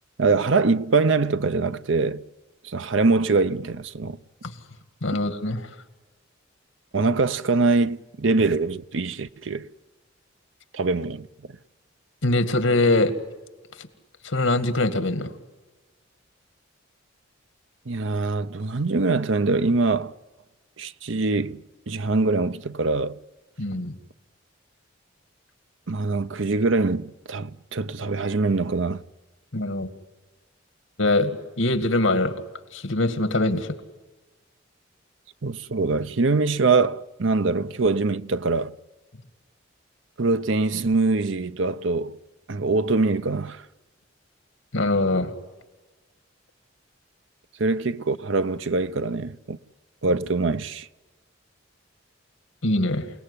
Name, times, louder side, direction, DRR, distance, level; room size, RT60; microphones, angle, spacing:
voice 1, 0.2-2.2 2.6-4.2 6.9-9.7 10.7-11.6 17.9-20.1 20.8-23.2 25.9-29.0 35.4-38.7 40.2-42.2 42.5-43.6 47.6-49.6 50.0-50.9, right 3 dB, 75° right, 0.8 m, -23 dB
voice 2, 5.0-5.6 12.2-13.1 13.8-13.9 14.2-15.3 23.6-23.9 29.5-29.9 31.0-32.3 32.7-33.7 44.7-45.3 52.6-53.1, left 2 dB, 80° left, 2.2 m, -23 dB
28.5 x 18.5 x 9.9 m
head